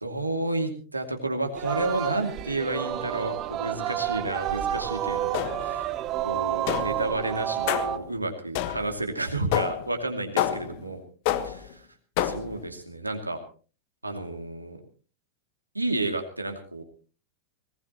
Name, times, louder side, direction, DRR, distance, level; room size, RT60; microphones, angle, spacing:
voice 1, 0.0-5.8 6.2-11.0 11.4-11.6 12.2-13.4 14.0-14.8 15.7-16.8, right 2 dB, 85° right, 5 dB, 2.5 m, -31 dB
Singing, 1.5-8.0, right 12 dB, 35° right, 1.0 m, -30 dB
sound 1, 5.3-5.8 6.7-7.1 7.7-8.1 8.5-9.0 9.5-9.9 10.4-10.8 11.3-11.7 12.2-12.6, left 11 dB, 45° left, 1.3 m, -28 dB
20.5 x 19.0 x 3.0 m, 0.37 s
figure-of-eight pair, 90°, 0 cm